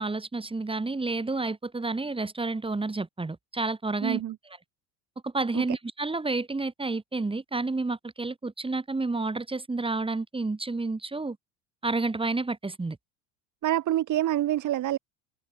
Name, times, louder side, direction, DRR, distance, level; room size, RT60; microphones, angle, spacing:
voice 1, 0.0-4.2 5.2-11.4 11.8-13.0, right 3 dB, 15° right, 4.5 m, -30 dB
voice 2, 4.0-4.3 5.5-5.6 13.6-15.0, right 13 dB, 50° right, 5.1 m, -26 dB
supercardioid pair, 90°, 38 cm